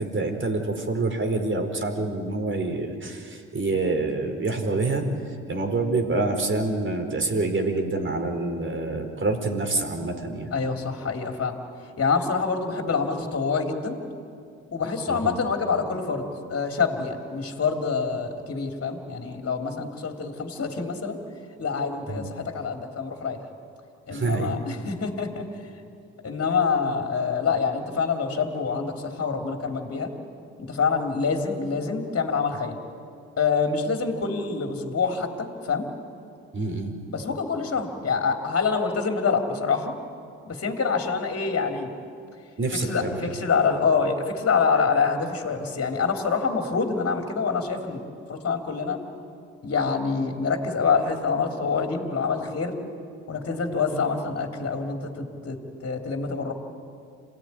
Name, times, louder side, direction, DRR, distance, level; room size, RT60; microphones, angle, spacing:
voice 1, 0.0-5.0 5.5-10.5 15.1-15.4 22.1-22.2 24.1-24.6 36.5-36.9 42.6-43.4, right 3 dB, 35° right, 5 dB, 4.7 m, -27 dB
voice 2, 10.5-11.6 12.0-13.9 14.7-21.2 21.6-23.4 24.1-25.5 26.2-30.1 30.6-32.7 33.4-35.9 37.1-39.9 40.5-41.9 42.8-48.0 48.3-49.0 49.6-52.7 53.3-55.6 55.8-56.5, left 5 dB, 45° left, 3 dB, 3.4 m, -26 dB
27.5 x 16.5 x 9.8 m, 2.4 s
hypercardioid pair, 50°, 33 cm